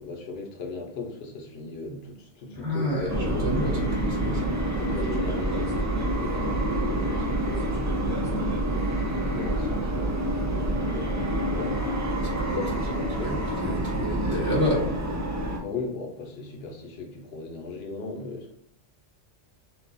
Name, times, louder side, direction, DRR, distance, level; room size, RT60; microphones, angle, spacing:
voice 1, 0.0-3.9 4.8-12.1 12.5-13.4 15.6-18.5, left 3 dB, 60° left, 1.1 m, -37 dB
voice 2, 2.6-4.6 12.2-12.6 13.2-15.0, equal, 55° right, 2.1 m, -29 dB
sound 1, 3.1-15.6, right 1 dB, 25° right, 0.4 m, -27 dB
6.0 x 2.4 x 2.6 m
omnidirectional pair, 1.3 m